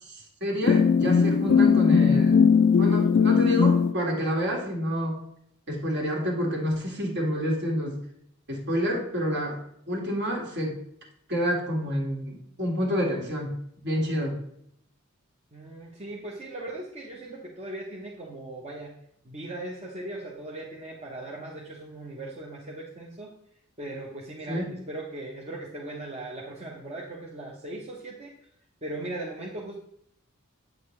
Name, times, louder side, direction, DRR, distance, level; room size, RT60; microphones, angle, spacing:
voice 1, 0.0-2.5 2.8-5.2 5.7-8.0 8.5-9.6 9.9-10.8 11.3-13.5 13.8-14.4 24.5-24.6, equal, 55° right, 0 dB, 2.0 m, -28 dB
sound 1, 0.6-3.9, left 6 dB, 55° left, 0.3 m, -19 dB
voice 2, 15.5-18.9 19.2-23.3 23.8-28.3 28.8-29.8, right 2 dB, 30° right, -3 dB, 0.9 m, -38 dB
8.3 x 6.6 x 3.2 m, 0.71 s
head